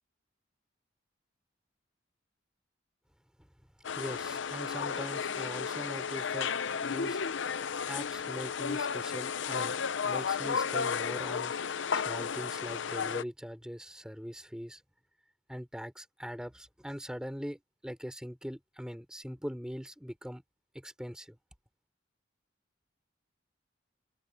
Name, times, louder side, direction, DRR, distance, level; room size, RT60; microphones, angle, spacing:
sound 1, 3.8-13.2, left 6 dB, 75° left, 0.6 m, -33 dB
voice 1, 4.0-6.5 6.8-7.2 7.9-9.8 10.0-11.5 11.9-14.8 15.5-20.4 20.7-21.4, equal, 5° right, 3.8 m, -41 dB
head